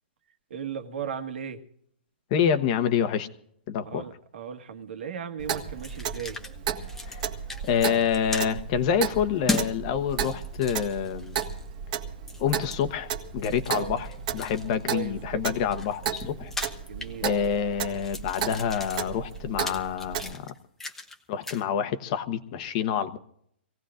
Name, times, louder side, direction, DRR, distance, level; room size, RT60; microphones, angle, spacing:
voice 1, 0.5-1.6 3.9-6.4 13.7-13.9 14.9-15.4 16.9-17.3, right 7 dB, 70° right, 1.8 m, -36 dB
voice 2, 2.3-3.3 3.7-4.1 7.1-7.2 7.6-11.4 12.4-16.5 17.2-20.5 21.3-23.2, left 8 dB, 35° left, 1.1 m, -27 dB
Clock, 5.4-20.3, right 8 dB, 45° right, 1.7 m, -34 dB
sound 1, 5.5-6.5 6.8-7.2 7.5-8.5 9.5-9.7 10.1-11.7 12.3-12.8 13.4-14.8 15.4-17.6 17.9-21.2 21.4-21.6, left 2 dB, 5° left, 1.0 m, -37 dB
26.0 x 17.5 x 2.5 m
hypercardioid pair, 155°, 6 cm